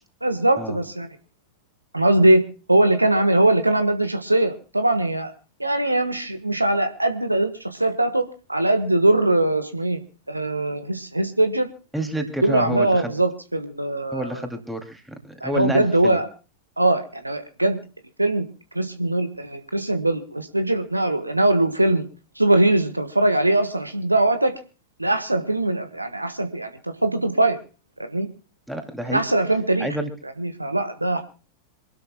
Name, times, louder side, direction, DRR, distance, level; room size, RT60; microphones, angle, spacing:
voice 1, 0.2-1.1 1.9-2.4 2.7-5.3 5.6-10.0 10.3-11.7 12.4-14.4 15.4-16.3 16.8-17.8 18.2-18.5 18.7-22.0 22.4-24.6 25.0-27.6 28.1-28.3 29.1-29.9 30.4-31.2, right 1 dB, 85° right, 8 dB, 1.4 m, -21 dB
voice 2, 11.9-13.1 14.1-16.2 28.7-29.2 29.8-30.1, right 1 dB, 5° right, 4 dB, 2.6 m, -29 dB
27.0 x 12.5 x 2.2 m, 0.35 s
figure-of-eight pair, 90°, 0 cm